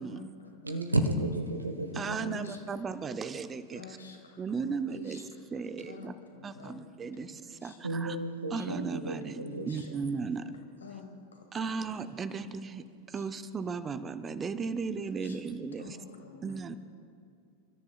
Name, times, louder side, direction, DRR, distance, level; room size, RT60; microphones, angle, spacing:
voice 1, 0.0-0.6 1.8-2.6 3.7-5.2 5.8-7.8 9.1-9.2 9.5-9.9 10.3-10.5 10.8-11.5 11.7-12.3 13.2-13.3 15.2-15.4 15.8-16.6, left 4 dB, 70° left, 2 dB, 2.2 m, -49 dB
voice 2, 0.6-2.3 7.8-9.7, right 1 dB, 80° right, 7 dB, 1.3 m, -32 dB
voice 3, 1.9-3.8 4.4-5.2 5.5-6.1 6.4-8.2 8.5-10.4 11.5-16.0 16.4-16.7, right 5 dB, 20° right, 11 dB, 0.7 m, -36 dB
28.5 x 13.5 x 2.4 m, 2.3 s
figure-of-eight pair, 90°, 0 cm